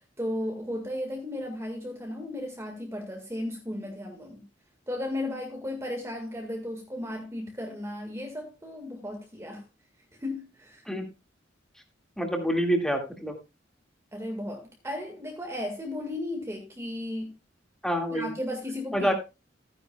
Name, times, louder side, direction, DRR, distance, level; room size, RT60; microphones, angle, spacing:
voice 1, 0.0-4.4 4.9-9.7 10.2-10.9 14.1-17.3 18.1-19.1, left 1 dB, 15° right, 1.6 m, -35 dB
voice 2, 12.2-13.4 17.8-18.3 18.9-19.1, equal, 5° left, 1.9 m, -27 dB
14.5 x 9.8 x 2.2 m
head